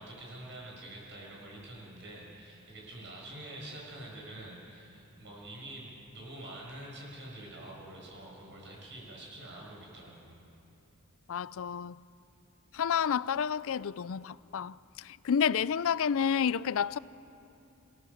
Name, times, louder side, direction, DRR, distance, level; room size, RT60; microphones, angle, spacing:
voice 1, 0.0-10.4, right 1 dB, 55° right, 7.2 m, -46 dB
voice 2, 11.3-12.0 12.7-17.0, left 7 dB, 65° left, 0.4 m, -30 dB
28.5 x 18.5 x 7.2 m
head